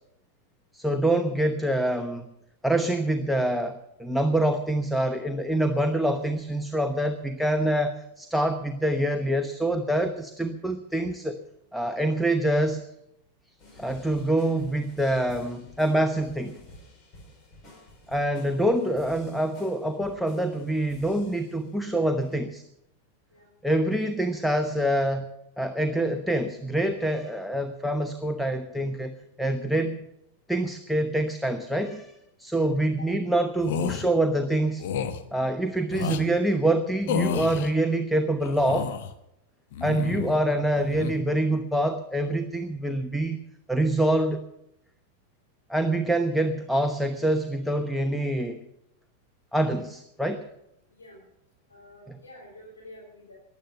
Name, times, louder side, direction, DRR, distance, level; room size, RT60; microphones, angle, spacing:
voice 1, 0.7-2.3 2.6-11.4 11.7-12.8 13.7-16.6 18.1-22.6 23.6-25.3 25.6-30.1 30.5-34.8 35.3-38.9 39.8-43.4 43.7-44.4 45.7-48.6 49.5-50.5 52.1-52.2, right 1 dB, ahead, 7 dB, 1.0 m, -26 dB
sound 1, 13.6-21.8 22.2-22.4, left 1 dB, 35° left, 4.7 m, -51 dB
sound 2, 33.6-34.0 34.8-35.2 35.9-36.2 37.1-37.7 38.4-39.1 39.7-40.4 40.7-41.1, left 8 dB, 50° left, 1.1 m, -30 dB
voice 2, 50.9-51.2 51.7-53.4, left 1 dB, 75° left, -2 dB, 3.7 m, -48 dB
15.5 x 11.0 x 6.8 m, 0.82 s
figure-of-eight pair, 90°, 0 cm